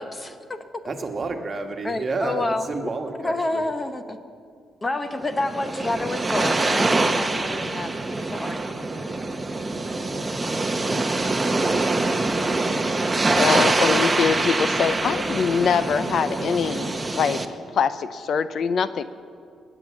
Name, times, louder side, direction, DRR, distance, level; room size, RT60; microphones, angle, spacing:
voice 1, 0.0-0.8 1.8-2.7 3.2-4.2 4.8-8.6, left 2 dB, 20° left, 9 dB, 0.8 m, -29 dB
voice 2, 0.8-3.7, right 3 dB, 35° right, 5 dB, 1.4 m, -30 dB
sound 1, 5.2-17.4, right 2 dB, 20° right, 0.9 m, -24 dB
voice 3, 13.3-17.4 17.7-19.1, left 6 dB, 60° left, 14 dB, 0.5 m, -23 dB
20.5 x 8.0 x 7.3 m, 2.3 s
cardioid pair, 115°, 0 cm